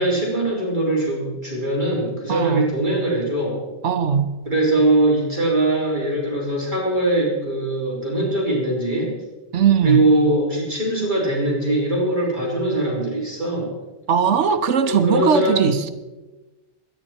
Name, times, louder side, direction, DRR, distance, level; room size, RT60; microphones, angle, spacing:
voice 1, 0.0-3.6 4.5-9.1 9.8-13.7 14.8-15.7, right 1 dB, 45° right, -4 dB, 3.8 m, -21 dB
voice 2, 2.3-2.7 3.8-4.3 9.5-10.0 14.1-15.9, right 7 dB, 85° right, 9 dB, 1.2 m, -19 dB
22.5 x 10.5 x 4.4 m, 1.1 s
omnidirectional pair, 1.2 m